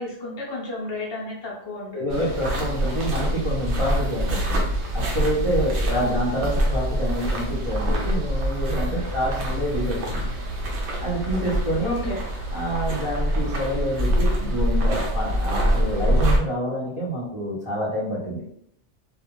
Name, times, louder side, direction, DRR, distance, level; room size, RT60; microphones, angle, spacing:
voice 1, 0.0-2.1 5.9-6.1 11.8-12.2, left 2 dB, 45° left, -4 dB, 0.3 m, -32 dB
voice 2, 1.9-4.7 4.9-10.3 11.0-12.1 12.5-18.4, equal, 35° right, -8 dB, 0.6 m, -27 dB
sound 1, 2.1-16.4, equal, 75° right, 0.9 m, -25 dB
2.3 x 2.3 x 2.9 m, 0.70 s
omnidirectional pair, 1.2 m